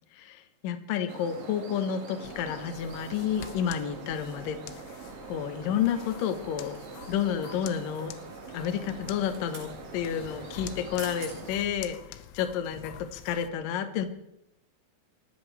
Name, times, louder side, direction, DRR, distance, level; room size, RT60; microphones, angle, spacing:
voice 1, 0.1-4.6 5.3-6.8 7.1-8.1 8.5-14.1, left 8 dB, 70° left, 8 dB, 2.1 m, -30 dB
sound 1, 1.1-11.5, right 5 dB, 50° right, 3.2 m, -44 dB
sound 2, 2.2-13.5, left 11 dB, 90° left, 3.4 m, -46 dB
sound 3, 6.7-7.3 9.0-9.7 10.7-10.8 11.0-11.4 11.9-12.0, right 4 dB, 70° right, 7.6 m, -46 dB
27.5 x 13.5 x 3.4 m, 0.83 s
omnidirectional pair, 5.8 m